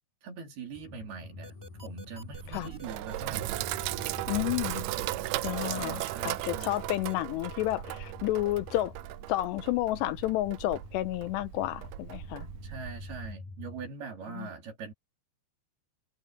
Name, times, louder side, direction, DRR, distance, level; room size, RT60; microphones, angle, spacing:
voice 1, 0.2-1.6 1.8-3.5 5.6-6.9 12.6-14.9, right 5 dB, 60° right, 5.4 m, -42 dB
sound 1, 0.7-13.9, left 2 dB, 50° left, 9.0 m, -48 dB
sound 2, 1.4-7.1, left 1 dB, 15° right, 5.3 m, -50 dB
Sink (filling or washing), 2.3-13.3, right 17 dB, 85° right, 2.2 m, -37 dB
voice 2, 4.3-4.8 5.4-8.9 9.3-12.5 14.4-14.5, left 16 dB, 80° left, 2.7 m, -31 dB
omnidirectional pair, 5.2 m